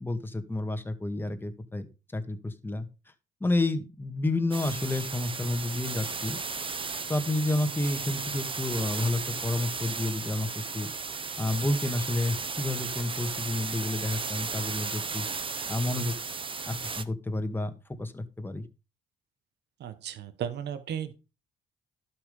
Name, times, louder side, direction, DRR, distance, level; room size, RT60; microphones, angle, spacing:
voice 1, 0.0-1.9 2.1-2.9 3.4-6.4 7.1-10.9 11.4-15.3 15.7-16.1 16.6-17.7 18.0-18.7, left 2 dB, 10° left, 1.8 m, -30 dB
sound 1, 4.5-17.0, right 4 dB, 30° right, 1.0 m, -35 dB
voice 2, 19.8-21.1, right 9 dB, 75° right, 1.3 m, -35 dB
12.0 x 6.1 x 5.4 m
cardioid pair, 95°, 18 cm